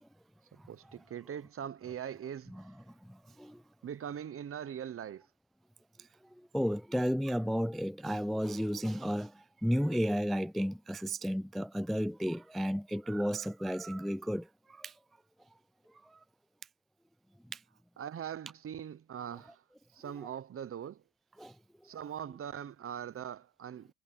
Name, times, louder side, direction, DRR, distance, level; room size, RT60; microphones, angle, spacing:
voice 1, 0.5-2.6 3.8-5.3 18.0-19.6 19.9-21.0 21.8-23.9, right 9 dB, 45° right, 0.9 m, -41 dB
voice 2, 3.0-3.6 6.5-14.9 17.5-17.6 21.4-21.5, equal, ahead, 0.3 m, -33 dB
cardioid pair, 90°, 30 cm